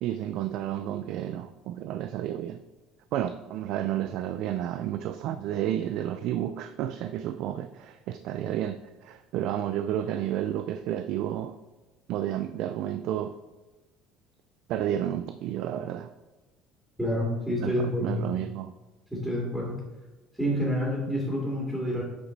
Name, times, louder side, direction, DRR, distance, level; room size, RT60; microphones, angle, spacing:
voice 1, 0.0-2.6 3.1-11.6 12.1-13.4 14.7-16.1 17.6-18.7, right 11 dB, 65° right, 10 dB, 0.4 m, -31 dB
voice 2, 17.0-18.2 19.1-19.8 20.4-22.0, equal, 5° right, -4 dB, 2.6 m, -28 dB
8.4 x 4.9 x 4.1 m, 1.2 s
cardioid pair, 120°, 0 cm